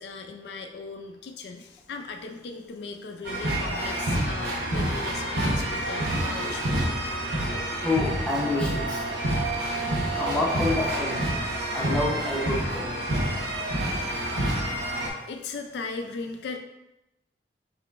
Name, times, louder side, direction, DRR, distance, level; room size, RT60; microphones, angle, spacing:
voice 1, 0.0-6.9 14.6-16.6, left 4 dB, 70° left, 4 dB, 0.3 m, -38 dB
sound 1, 3.2-15.1, right 1 dB, 75° right, 0.8 m, -28 dB
voice 2, 7.8-9.0 10.1-11.2 11.7-12.9, left 2 dB, 5° left, -4 dB, 0.6 m, -28 dB
sound 2, 7.9-14.4, right 7 dB, 55° right, 0.3 m, -39 dB
3.8 x 3.0 x 3.3 m, 0.93 s
head